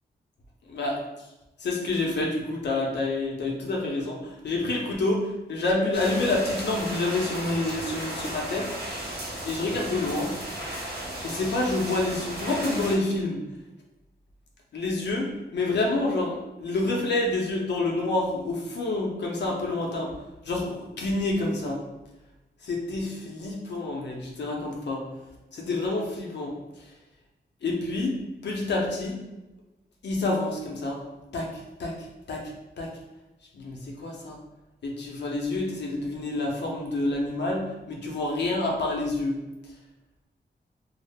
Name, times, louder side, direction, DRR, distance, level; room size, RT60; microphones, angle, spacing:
voice 1, 1.6-8.7 9.4-10.3 11.2-13.4 14.7-20.1 20.4-21.8 22.6-25.0 25.5-26.9 27.6-28.1 28.4-29.2 30.0-31.0 31.3-31.9 32.3-32.9 33.5-34.4 34.8-39.4, left 2 dB, 75° left, -1 dB, 0.6 m, -28 dB
sound 1, 5.9-13.0, right 1 dB, 65° right, 0.9 m, -35 dB
2.3 x 2.0 x 3.3 m, 1.0 s
wide cardioid pair, 85°, 18 cm